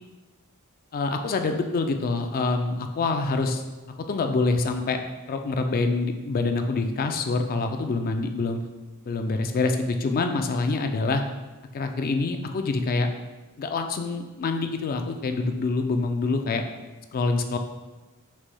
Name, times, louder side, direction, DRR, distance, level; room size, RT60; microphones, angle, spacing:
voice 1, 0.9-3.6 4.1-5.0 5.3-8.6 9.0-11.2 11.7-13.1 13.6-16.6 17.1-17.6, left 3 dB, 40° left, 6 dB, 0.4 m, -26 dB
6.1 x 3.3 x 2.2 m, 1.2 s
head